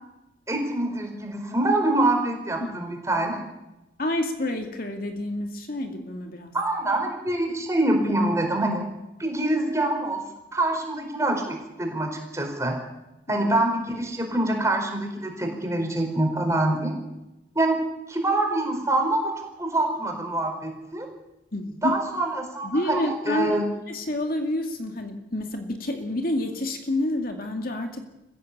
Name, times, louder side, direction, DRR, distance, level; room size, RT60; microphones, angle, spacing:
voice 1, 0.5-3.4 6.5-8.9 9.2-10.2 10.5-12.7 13.3-16.9 17.5-17.7 18.1-21.1 21.8-23.6, right 2 dB, 15° right, 2 dB, 4.7 m, -25 dB
voice 2, 2.6-3.0 4.0-6.5 13.3-13.5 21.5-22.0 22.6-23.6 23.9-28.1, left 1 dB, 50° left, 4 dB, 2.3 m, -29 dB
23.5 x 16.0 x 8.5 m, 0.97 s
head